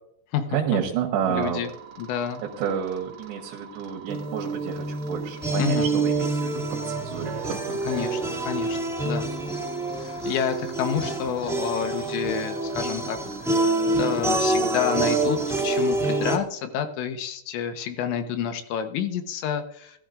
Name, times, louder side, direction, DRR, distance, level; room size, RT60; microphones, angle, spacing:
voice 1, 0.5-1.7 2.4-8.0, right 8 dB, 75° right, -1 dB, 3.5 m, -30 dB
voice 2, 1.3-1.7 2.0-2.4 5.6-5.9 7.9-8.8 9.0-9.3 10.0-13.2 13.4-13.7 14.0-20.0, left 8 dB, 75° left, 7 dB, 3.3 m, -29 dB
sound 1, 1.4-16.4, right 6 dB, 45° right, 3.1 m, -43 dB
sound 2, 4.1-16.4, right 2 dB, ahead, 1.2 m, -27 dB
20.0 x 13.0 x 2.6 m, 0.70 s
omnidirectional pair, 5.3 m